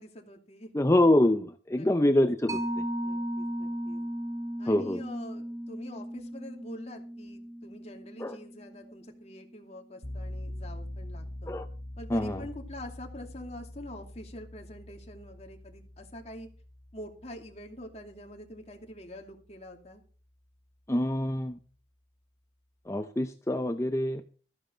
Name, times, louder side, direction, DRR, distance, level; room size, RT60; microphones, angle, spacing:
voice 1, 0.0-0.7 1.7-2.2 3.0-4.0 4.6-11.5 12.0-16.5 16.9-20.0, left 1 dB, 35° left, 3 dB, 2.5 m, -45 dB
voice 2, 0.7-2.9 4.7-5.0 8.2-8.4 11.5-11.6 12.1-12.4 20.9-21.6 22.9-24.2, left 1 dB, 15° left, 8 dB, 0.6 m, -25 dB
Mallet percussion, 2.5-9.5, equal, 20° right, 1.3 m, -36 dB
sound 1, 10.0-18.9, left 1 dB, 60° left, 3.0 m, -44 dB
14.5 x 10.5 x 4.4 m, 0.39 s
head